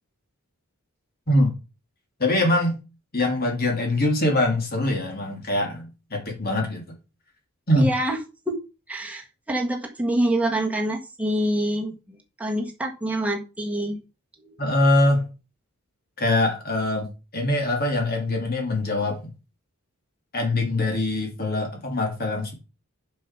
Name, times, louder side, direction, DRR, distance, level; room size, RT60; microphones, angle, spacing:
voice 1, 2.2-2.8 3.1-6.8 7.7-7.9 14.6-15.3 16.2-17.1 17.3-19.2 20.3-22.5, left 1 dB, 45° left, 2.9 m, -23 dB
voice 2, 7.8-8.2 8.5-8.6 8.9-14.0 14.4-14.5, right 1 dB, 5° right, 1.5 m, -26 dB
7.0 x 5.7 x 6.0 m
head